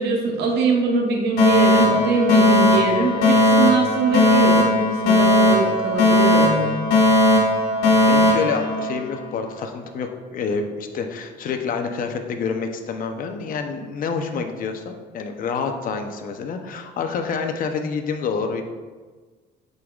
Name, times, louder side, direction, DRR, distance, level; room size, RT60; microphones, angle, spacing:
voice 1, 0.0-6.8, right 4 dB, 75° right, 0 dB, 1.1 m, -22 dB
Alarm, 1.4-9.4, left 1 dB, 85° left, 1.8 m, -17 dB
voice 2, 7.9-18.6, left 5 dB, 55° left, 5 dB, 0.7 m, -28 dB
8.1 x 5.3 x 2.4 m, 1.4 s
cardioid pair, 110°, 17 cm